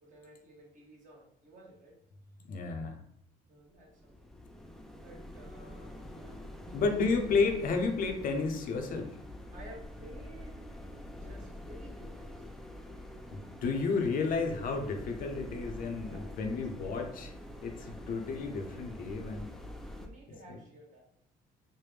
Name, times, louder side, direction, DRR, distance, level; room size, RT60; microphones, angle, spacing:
voice 1, 0.0-2.0 2.4-2.5 3.5-4.4 5.0-7.1 9.5-10.7 11.1-12.6 16.0-16.4 16.8-17.1 19.9-21.0, right 1 dB, 50° right, -1 dB, 1.2 m, -54 dB
voice 2, 2.5-3.0 6.7-9.2 13.3-17.3 17.6-19.5, left 4 dB, 55° left, 4 dB, 0.6 m, -32 dB
sound 1, 3.8-20.1, left 1 dB, ahead, 0.3 m, -46 dB
3.3 x 2.1 x 3.2 m, 0.70 s
cardioid pair, 110°, 17 cm